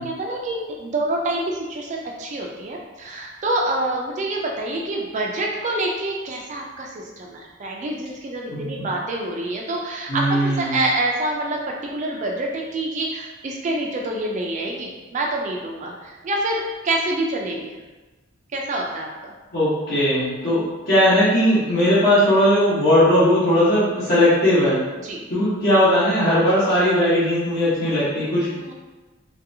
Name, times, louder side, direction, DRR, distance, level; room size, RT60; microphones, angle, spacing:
voice 1, 0.0-17.7 18.5-19.3 25.0-25.2 28.6-28.7, right 2 dB, 35° right, -1 dB, 0.3 m, -27 dB
voice 2, 8.5-8.9 10.1-10.8 19.5-24.8 25.3-28.5, equal, 50° left, -12 dB, 1.0 m, -18 dB
3.2 x 2.7 x 2.6 m, 1.2 s
head